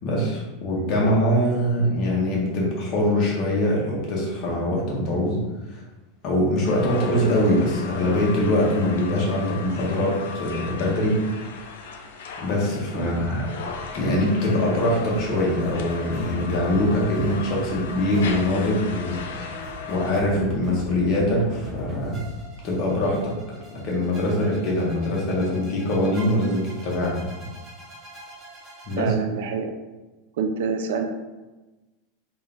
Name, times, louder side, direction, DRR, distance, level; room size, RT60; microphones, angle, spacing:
voice 1, 0.0-5.4 5.7-5.8 6.2-11.2 12.4-13.5 13.9-19.2 19.9-22.2 22.6-23.3 23.8-27.2 28.9-29.1, left 1 dB, 30° left, -4 dB, 0.9 m, -23 dB
sound 1, 6.7-20.2, left 5 dB, 80° left, 0.4 m, -37 dB
voice 2, 12.9-13.3 29.0-29.7 30.4-31.1, right 5 dB, 70° right, 6 dB, 0.4 m, -27 dB
sound 2, 14.8-29.0, right 1 dB, 20° right, 0.6 m, -40 dB
3.6 x 2.4 x 3.4 m, 1.1 s
supercardioid pair, 175°, 0 cm